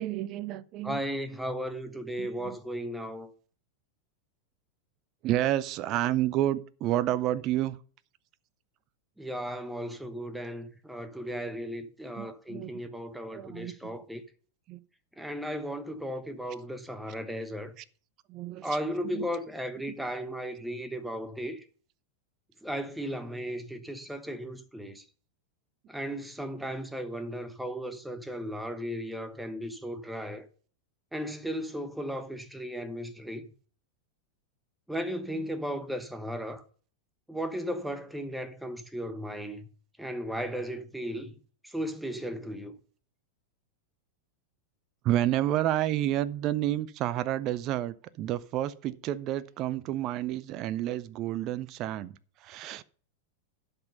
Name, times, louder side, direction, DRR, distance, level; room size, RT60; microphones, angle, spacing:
voice 1, 0.0-1.0 2.2-2.6 5.2-7.8 12.2-12.7 13.3-13.9 14.7-14.8 17.8-17.9 18.3-18.7 19.1-19.3 45.0-52.2 52.4-52.8, right 13 dB, 35° right, 0.5 m, -30 dB
voice 2, 0.8-3.3 9.2-14.2 15.2-17.7 18.6-21.6 22.6-25.0 25.9-30.5 31.1-33.5 34.9-36.6 37.3-39.7 40.0-41.4 41.6-42.8, equal, 5° right, 1.1 m, -35 dB
11.5 x 5.5 x 5.5 m
figure-of-eight pair, 90°, 0 cm